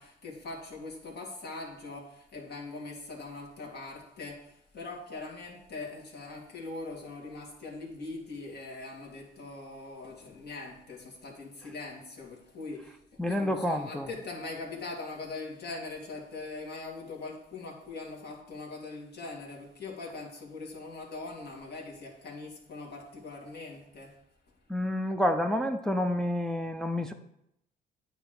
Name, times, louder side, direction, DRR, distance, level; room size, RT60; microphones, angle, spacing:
voice 1, 0.0-24.1, left 3 dB, 55° left, -2 dB, 2.2 m, -41 dB
voice 2, 13.2-14.1 24.7-27.1, left 1 dB, 5° left, 4 dB, 0.5 m, -29 dB
9.0 x 3.0 x 6.4 m, 0.79 s
cardioid pair, 90°, 20 cm